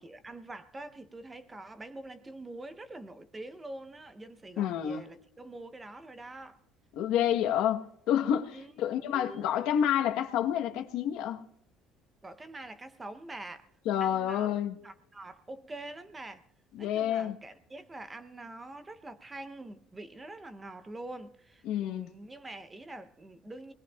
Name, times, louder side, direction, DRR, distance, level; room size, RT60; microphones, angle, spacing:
voice 1, 0.0-6.6 8.5-9.7 12.2-13.7 14.0-14.5 14.8-16.4 16.8-23.7, right 2 dB, 15° right, 0.6 m, -45 dB
voice 2, 4.6-5.0 6.9-11.5 13.8-14.8 16.7-17.4 21.6-22.1, left 10 dB, 75° left, 1.0 m, -29 dB
25.5 x 20.0 x 2.3 m
cardioid pair, 150°, 0 cm